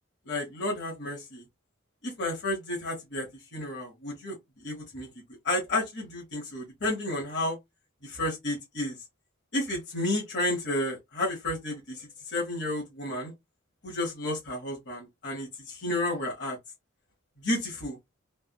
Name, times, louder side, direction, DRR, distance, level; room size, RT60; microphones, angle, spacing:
voice 1, 0.3-1.4 2.0-4.4 4.6-5.1 5.4-7.6 8.0-8.9 9.5-13.3 13.8-16.6 17.4-18.0, left 1 dB, 55° left, 1.2 m, -31 dB
3.4 x 2.4 x 2.2 m
head